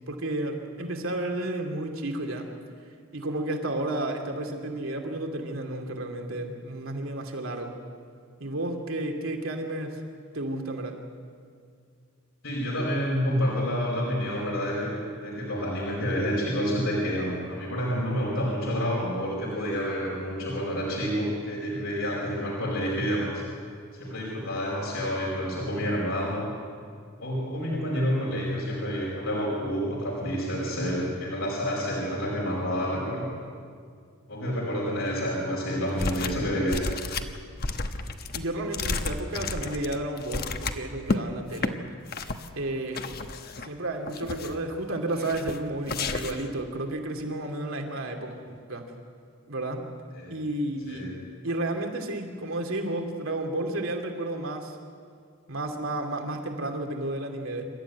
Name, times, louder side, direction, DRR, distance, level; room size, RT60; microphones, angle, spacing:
voice 1, 0.1-2.5 3.1-7.8 8.4-9.9 10.3-11.0 38.3-41.8 42.5-43.1 43.6-48.4 48.7-48.9 49.5-49.9 50.3-51.1 51.4-54.8 55.5-57.6, right 1 dB, 80° right, 3 dB, 2.8 m, -32 dB
voice 2, 12.4-23.4 23.9-26.5 27.2-33.3 34.3-36.8 37.1-37.3 50.1-50.3 50.9-51.1, equal, 80° left, -4 dB, 5.0 m, -29 dB
sound 1, 36.0-36.4 36.7-41.2 41.5-41.7 42.1-42.5 42.9-43.7 44.1-44.7 45.2-45.6 45.9-46.5, left 3 dB, 50° left, 1.1 m, -32 dB
27.0 x 13.5 x 9.5 m, 2.2 s
head